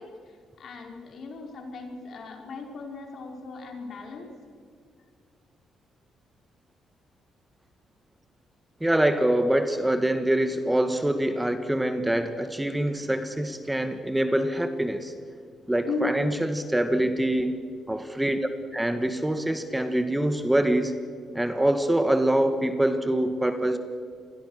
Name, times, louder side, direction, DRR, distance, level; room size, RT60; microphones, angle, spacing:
voice 1, 0.0-4.3 15.9-16.3, left 4 dB, 60° left, 2 dB, 5.1 m, -37 dB
voice 2, 8.8-15.1 15.7-18.4 18.7-21.0 21.3-23.8, right 1 dB, 10° right, 9 dB, 1.6 m, -25 dB
27.0 x 21.0 x 6.5 m, 2.2 s
cardioid pair, 90°, 0 cm